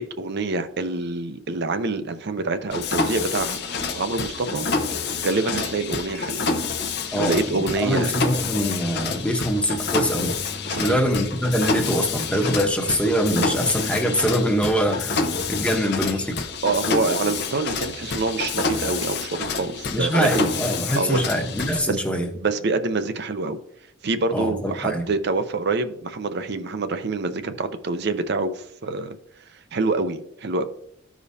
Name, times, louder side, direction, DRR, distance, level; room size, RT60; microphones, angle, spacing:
voice 1, 0.0-3.6 3.9-4.7 5.2-6.4 7.1-8.1 10.7-11.0 16.6-20.5 20.9-21.2 21.9-22.0 22.4-23.6 24.0-29.2 29.7-30.6, right 3 dB, 55° right, 0.6 m, -26 dB
Mechanisms, 2.7-21.8, left 4 dB, 55° left, 0.8 m, -28 dB
voice 2, 7.1-10.4 10.8-16.4 19.9-22.3 24.3-25.0, equal, 5° left, 1.0 m, -24 dB
13.5 x 5.0 x 2.8 m
head